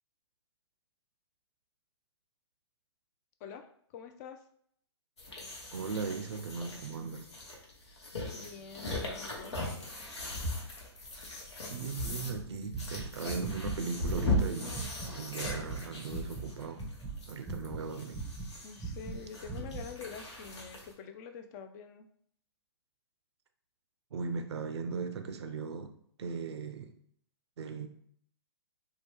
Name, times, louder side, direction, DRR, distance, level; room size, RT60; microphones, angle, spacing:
voice 1, 3.4-4.4 7.8-8.0 8.3-9.6 18.6-22.1, left 6 dB, 40° left, 7 dB, 0.4 m, -46 dB
sound 1, 5.2-20.9, left 2 dB, 85° left, 1.0 m, -38 dB
voice 2, 5.7-7.3 11.7-14.8 15.2-16.8 17.3-18.2 24.1-25.9 26.2-26.9 27.6-27.9, right 5 dB, 75° right, 8 dB, 0.4 m, -38 dB
sound 2, 12.0-14.4 14.7-15.1 15.4-16.5 16.7-17.8 18.1-19.9, right 3 dB, ahead, 0.6 m, -40 dB
2.8 x 2.2 x 3.3 m, 0.65 s
hypercardioid pair, 130°, 14 cm